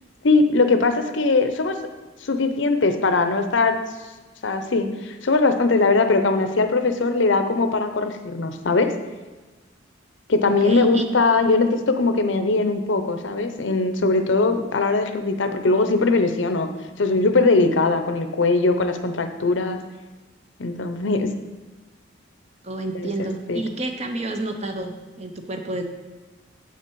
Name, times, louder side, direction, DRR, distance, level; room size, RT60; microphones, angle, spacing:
voice 1, 0.2-1.7 2.2-3.8 4.4-8.9 10.3-16.7 17.0-19.8 20.6-21.3 22.9-23.1 23.5-23.6, left 3 dB, 70° left, 8 dB, 0.7 m, -20 dB
voice 2, 10.4-11.1 22.6-24.9 25.2-25.8, right 2 dB, 35° right, 5 dB, 0.8 m, -29 dB
7.7 x 5.9 x 4.6 m, 1.2 s
head